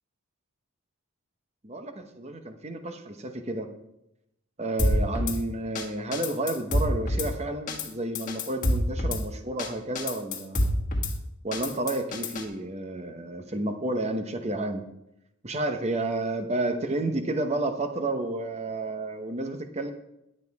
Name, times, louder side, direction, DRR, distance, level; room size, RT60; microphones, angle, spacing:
voice 1, 1.6-3.7 4.6-10.7 11.4-14.8 15.4-19.9, right 2 dB, 30° right, 7 dB, 0.9 m, -31 dB
Drum kit / Snare drum, 4.8-5.4 5.8-5.9 6.1-7.3 7.7-7.9 8.2-9.2 9.6-9.7 10.0-11.1 11.5-12.4, left 1 dB, 35° left, 1.6 m, -26 dB
11.0 x 7.5 x 4.7 m, 0.82 s
head